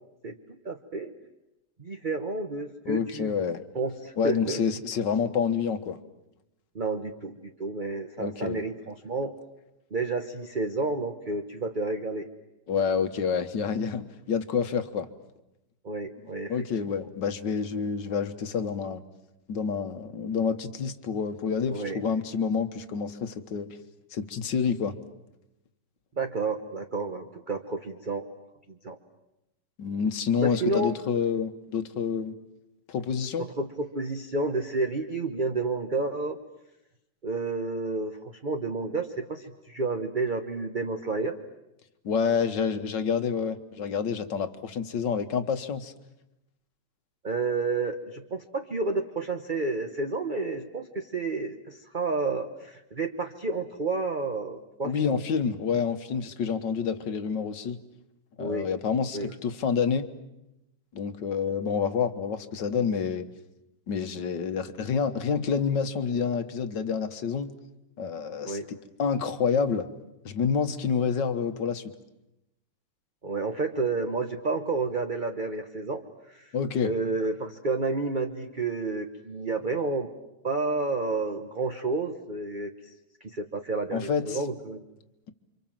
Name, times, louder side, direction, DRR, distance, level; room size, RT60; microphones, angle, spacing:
voice 1, 0.2-1.1 1.8-3.4 3.7-4.6 6.7-9.3 9.9-12.3 15.8-16.7 21.7-22.0 26.2-28.2 28.7-29.0 30.4-30.9 33.4-36.4 37.2-41.4 47.2-55.2 58.4-58.7 59.1-59.3 68.4-68.7 73.2-76.0 76.3-76.5 76.8-80.1 80.4-82.7 83.2-84.8, right 3 dB, 30° right, 5 dB, 1.0 m, -30 dB
voice 2, 2.9-3.6 4.2-6.0 8.2-8.6 12.7-15.1 16.5-19.0 19.5-23.7 24.1-24.9 29.8-32.3 32.9-33.5 42.0-45.9 54.8-57.8 58.4-60.1 60.9-63.3 63.9-67.5 68.0-69.9 70.3-71.8 76.5-76.9 83.9-84.4, left 6 dB, 55° left, 9 dB, 1.9 m, -28 dB
29.5 x 25.5 x 7.5 m, 0.91 s
omnidirectional pair, 2.4 m